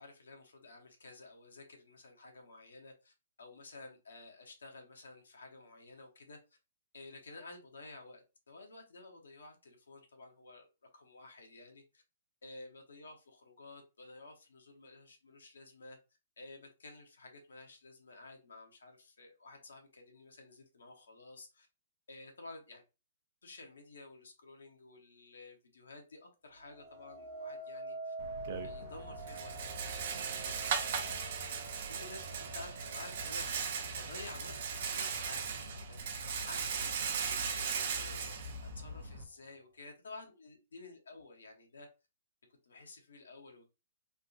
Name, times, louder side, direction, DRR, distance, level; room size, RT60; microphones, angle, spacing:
voice 1, 0.0-6.4 6.9-12.0 12.4-16.0 16.4-21.7 22.1-22.8 23.4-28.1 28.6-29.5 30.0-33.6 34.0-36.0 36.5-41.9 42.6-43.7, left 2 dB, 80° left, 2 dB, 1.0 m, -52 dB
sound 1, 26.7-35.8 36.4-36.8, right 2 dB, 40° right, 1.2 m, -47 dB
Rattle, 28.2-39.2, right 6 dB, 55° right, 0.6 m, -38 dB
3.4 x 2.4 x 2.7 m, 0.28 s
hypercardioid pair, 130°, 0 cm